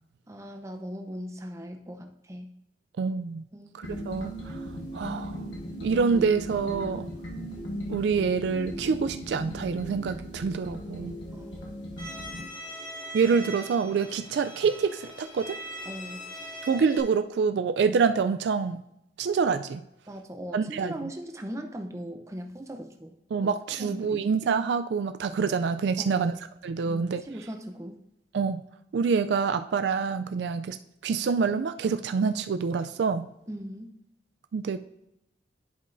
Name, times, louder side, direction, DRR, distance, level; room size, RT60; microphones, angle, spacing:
voice 1, 0.3-2.5 3.5-3.8 11.3-11.6 15.9-16.2 20.1-23.1 23.4-24.2 26.0-26.3 26.8-28.0 33.5-33.9, equal, 15° right, 5 dB, 0.7 m, -39 dB
voice 2, 3.0-3.5 3.7-4.6 4.9-5.4 5.8-7.1 7.9-11.1 13.1-15.6 16.6-18.8 19.2-19.8 20.5-20.9 23.3-26.3 26.6-27.2 28.3-28.6 28.9-30.8 31.0-33.3 34.5-34.8, right 5 dB, 70° right, 10 dB, 0.3 m, -26 dB
sound 1, 3.8-12.5, equal, 90° left, 1.3 m, -37 dB
Bowed string instrument, 12.0-17.0, equal, 25° left, 2.0 m, -41 dB
11.0 x 5.4 x 2.6 m, 0.86 s
head